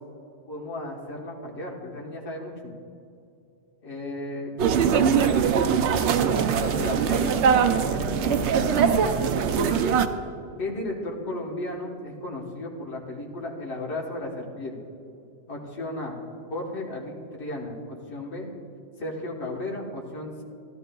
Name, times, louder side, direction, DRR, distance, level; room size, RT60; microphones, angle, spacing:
voice 1, 0.5-2.7 3.8-5.4 6.6-7.4 7.7-9.0 10.6-14.8 15.5-16.2 16.5-18.5 19.0-20.4, left 1 dB, 65° left, -2 dB, 1.6 m, -34 dB
sound 1, 4.6-10.1, right 7 dB, 75° right, 0.9 m, -22 dB
14.0 x 12.0 x 2.3 m, 2.5 s
omnidirectional pair, 1.2 m